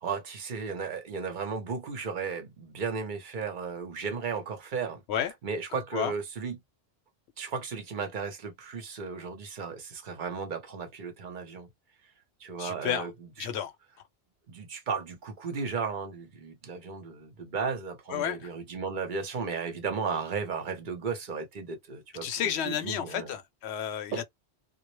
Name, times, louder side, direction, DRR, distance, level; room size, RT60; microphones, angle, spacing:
voice 1, 0.0-5.0 5.4-6.6 7.4-11.7 12.4-13.1 13.4-13.5 14.5-23.3 24.1-24.2, right 5 dB, 50° right, 0.8 m, -35 dB
voice 2, 12.6-13.1 13.4-13.7 18.1-18.5 22.2-24.2, left 9 dB, 75° left, 0.8 m, -31 dB
2.2 x 2.0 x 2.9 m
omnidirectional pair, 1.2 m